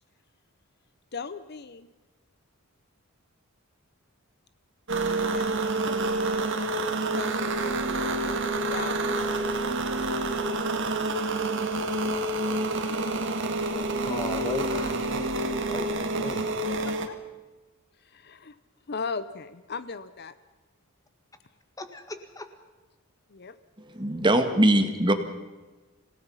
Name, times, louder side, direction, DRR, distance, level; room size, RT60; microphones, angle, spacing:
voice 1, 1.1-1.9 5.3-9.0 13.7-15.3 16.7-17.2 18.0-18.6 18.9-20.3 23.3-23.6, left 4 dB, 50° left, 14 dB, 0.7 m, -39 dB
sound 1, 4.9-17.1, right 2 dB, 60° right, 2.0 m, -28 dB
voice 2, 14.1-16.5 21.8-22.5, left 1 dB, 15° left, 7 dB, 1.8 m, -37 dB
voice 3, 23.9-25.1, right 1 dB, 20° right, 7 dB, 1.8 m, -21 dB
27.0 x 17.5 x 5.6 m, 1.2 s
head